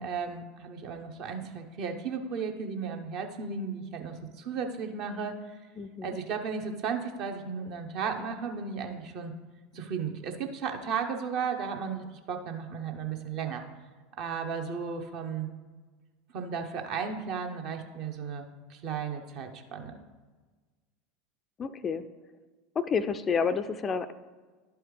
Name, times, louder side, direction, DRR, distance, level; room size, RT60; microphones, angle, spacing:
voice 1, 0.0-5.6 6.0-9.3 9.7-13.6 14.2-15.5 16.3-20.0, right 6 dB, 50° right, 5 dB, 0.8 m, -35 dB
voice 2, 5.8-6.2 21.6-22.0 22.8-24.1, left 6 dB, 25° left, 11 dB, 0.3 m, -29 dB
11.5 x 4.6 x 3.2 m, 1.4 s
figure-of-eight pair, 75°, 0 cm